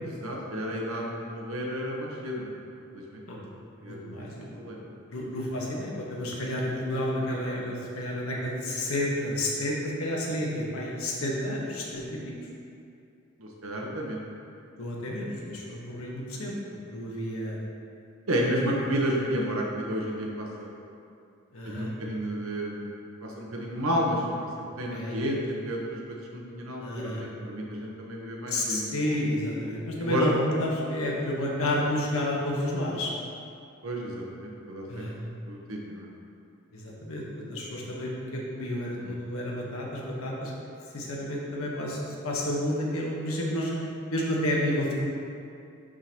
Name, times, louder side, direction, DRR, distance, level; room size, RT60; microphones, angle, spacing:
voice 1, 0.0-2.5 2.9-3.2 3.8-4.0 4.5-4.8 13.4-14.2 18.3-20.7 21.6-22.9 23.2-25.8 26.1-28.8 30.0-30.3 33.8-35.1 35.5-36.1 39.0-39.1, equal, 80° right, -2 dB, 1.1 m, -31 dB
voice 2, 3.8-4.6 5.1-12.3 14.8-17.6 18.6-18.7 21.5-21.9 24.9-25.2 26.8-27.2 28.5-33.1 34.9-35.2 36.7-37.2 37.5-40.5 40.9-43.8 44.1-44.9, left 1 dB, 85° left, -3 dB, 1.2 m, -30 dB
11.0 x 3.8 x 2.9 m, 2.5 s
head